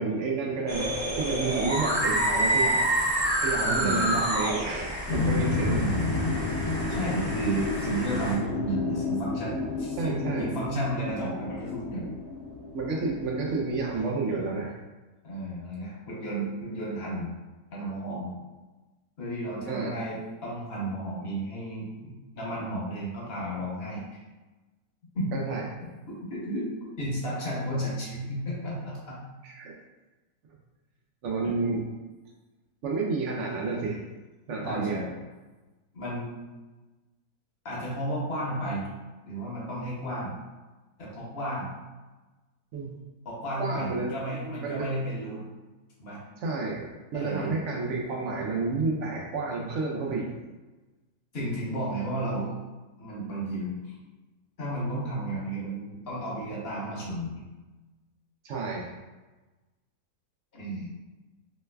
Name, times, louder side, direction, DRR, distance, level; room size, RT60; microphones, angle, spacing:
voice 1, 0.0-2.9 3.4-5.8 10.0-10.5 12.7-14.8 19.7-19.9 25.3-25.6 29.4-29.7 31.2-31.8 32.8-34.0 34.5-35.0 42.7-42.9 43.6-44.9 46.4-50.3 58.4-58.9, right 3 dB, 65° right, -1 dB, 0.7 m, -30 dB
sound 1, 0.7-8.3, right 1 dB, 45° right, 0.3 m, -28 dB
voice 2, 3.6-4.0 5.6-5.9 6.9-12.1 15.2-17.3 17.7-18.3 19.2-24.0 25.1-25.5 26.1-29.2 31.4-31.7 34.6-35.1 35.9-36.3 37.6-38.9 39.2-40.3 41.0-41.7 43.2-45.4 46.0-46.2 47.1-47.5 51.3-52.6 53.0-53.9 54.6-57.4 60.5-60.9, right 1 dB, 45° left, -5 dB, 1.0 m, -33 dB
sound 2, 5.1-14.0, left 3 dB, 75° left, 1.1 m, -31 dB
3.3 x 3.1 x 2.2 m, 1.2 s
omnidirectional pair, 1.6 m